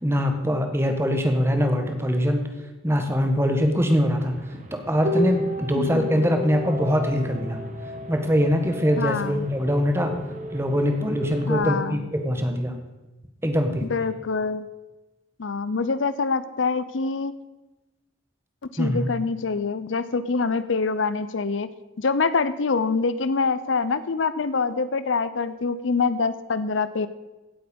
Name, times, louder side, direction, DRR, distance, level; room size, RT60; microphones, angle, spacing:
voice 1, 0.0-2.5 2.8-4.4 4.7-7.6 8.1-10.2 10.5-12.7 13.4-13.8 18.8-19.1, equal, 15° right, 5 dB, 1.4 m, -23 dB
sound 1, 4.0-11.5, left 1 dB, 40° right, 1.4 m, -33 dB
voice 2, 5.7-6.3 9.0-9.5 11.5-12.0 13.8-14.7 15.4-17.3 18.6-21.7 22.0-27.1, left 4 dB, 80° left, 14 dB, 0.7 m, -25 dB
17.0 x 7.9 x 5.3 m, 1.1 s
head